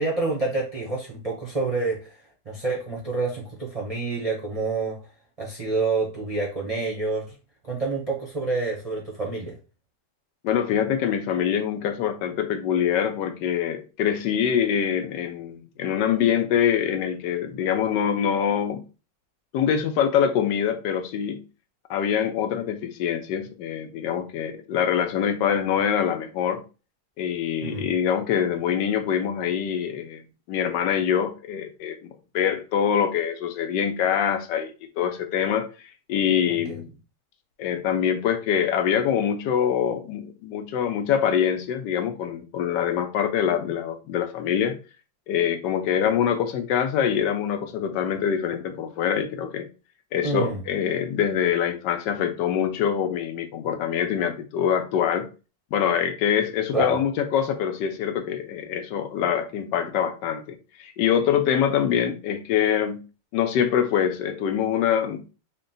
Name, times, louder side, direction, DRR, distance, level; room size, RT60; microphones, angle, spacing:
voice 1, 0.0-2.1 2.5-5.0 5.4-7.3 7.7-9.5 27.6-27.9 36.5-36.8 50.2-50.6 56.7-57.0, right 3 dB, 40° right, 0.5 m, -28 dB
voice 2, 10.4-18.8 19.5-21.4 21.9-26.6 27.2-30.2 30.5-34.7 35.0-35.7 36.1-36.9 37.6-44.8 45.3-49.7 50.1-55.3 55.7-63.0 63.3-65.3, left 8 dB, 85° left, 1.3 m, -24 dB
3.8 x 2.2 x 3.8 m
omnidirectional pair, 1.9 m